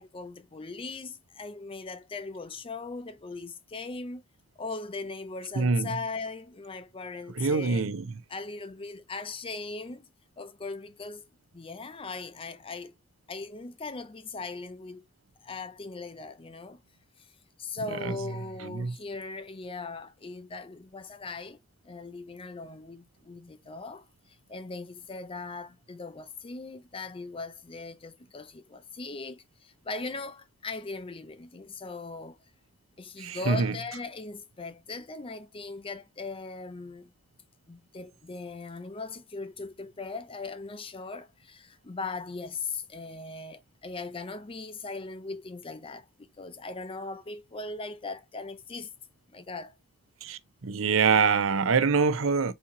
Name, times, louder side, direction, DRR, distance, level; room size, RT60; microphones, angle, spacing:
voice 1, 0.0-4.2 4.6-7.8 8.3-10.1 10.4-12.9 13.3-15.1 15.4-16.8 17.2-17.3 17.6-21.6 21.8-32.4 33.0-37.1 37.7-48.9 49.3-49.8, left 3 dB, 25° left, 0.5 m, -39 dB
voice 2, 5.6-5.9 7.4-8.1 18.0-18.1 18.6-18.9 33.2-33.7 50.2-52.5, right 5 dB, 70° right, 0.6 m, -25 dB
4.3 x 2.9 x 3.6 m
head